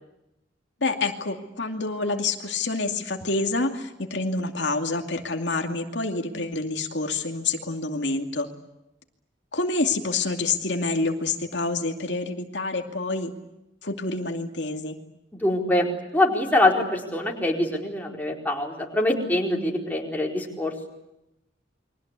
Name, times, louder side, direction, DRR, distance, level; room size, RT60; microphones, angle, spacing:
voice 1, 0.8-8.5 9.5-13.3 13.8-15.0, left 3 dB, 70° left, 3 dB, 2.5 m, -27 dB
voice 2, 15.4-15.9 16.1-20.9, left 1 dB, 10° left, -1 dB, 4.4 m, -24 dB
29.5 x 23.5 x 8.3 m, 0.89 s
head